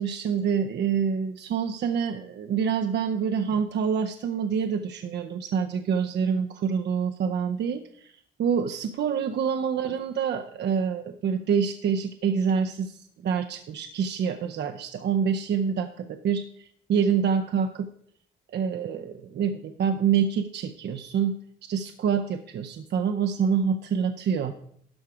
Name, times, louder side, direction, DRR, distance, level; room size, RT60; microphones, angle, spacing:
voice 1, 0.0-8.1 8.4-17.9 18.5-21.4 21.7-24.5, right 7 dB, 60° right, 7 dB, 0.6 m, -26 dB
12.5 x 4.8 x 4.9 m, 0.67 s
cardioid pair, 90°, 20 cm